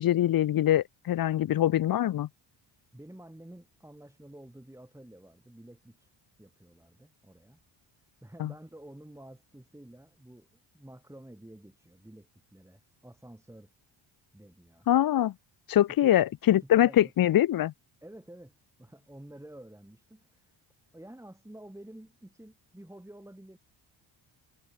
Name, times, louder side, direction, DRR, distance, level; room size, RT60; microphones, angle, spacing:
voice 1, 0.0-2.3 8.4-8.5 14.9-15.3 15.7-17.7, left 12 dB, 45° left, 0.6 m, -23 dB
voice 2, 2.9-6.1 6.4-7.6 8.2-13.7 14.3-14.9 15.9-16.1 16.5-17.1 18.0-20.5 20.9-23.6, right 1 dB, 5° right, 7.2 m, -50 dB
cardioid pair, 95°, 49 cm